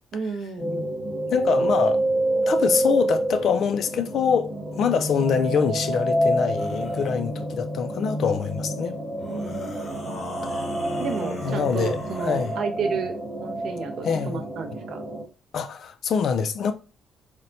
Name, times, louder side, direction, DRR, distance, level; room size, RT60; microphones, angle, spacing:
voice 1, 0.1-0.9 9.2-10.3 11.0-13.1 13.4-15.1, right 5 dB, 50° right, 0.5 m, -32 dB
sound 1, 0.6-15.2, right 1 dB, 5° left, 1.0 m, -28 dB
voice 2, 1.3-2.0 2.5-9.0 11.4-12.5 14.0-14.4 15.5-16.7, left 7 dB, 45° left, 0.3 m, -25 dB
sound 2, 6.6-7.1 9.2-12.6, left 1 dB, 30° left, 0.7 m, -37 dB
4.1 x 2.1 x 2.5 m
cardioid pair, 175°, 0 cm